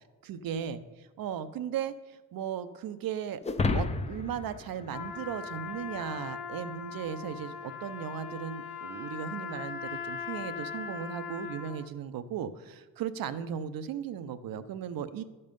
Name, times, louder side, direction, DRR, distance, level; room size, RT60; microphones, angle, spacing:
voice 1, 0.2-3.4 3.7-15.2, right 8 dB, 65° right, 12 dB, 0.7 m, -37 dB
sound 1, 3.4-6.0, left 3 dB, 20° left, 0.5 m, -32 dB
Trumpet, 4.9-11.9, left 6 dB, 80° left, 1.1 m, -40 dB
11.5 x 5.5 x 5.3 m, 1.2 s
cardioid pair, 95°, 38 cm